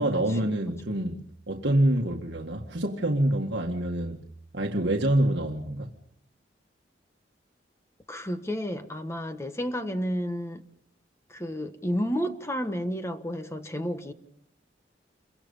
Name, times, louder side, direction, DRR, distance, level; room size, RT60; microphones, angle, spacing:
voice 1, 0.0-4.2 4.5-5.9, right 1 dB, 65° right, 1.8 m, -26 dB
voice 2, 8.1-10.6 11.3-14.1, equal, 15° left, 1.3 m, -31 dB
28.5 x 23.5 x 5.5 m
head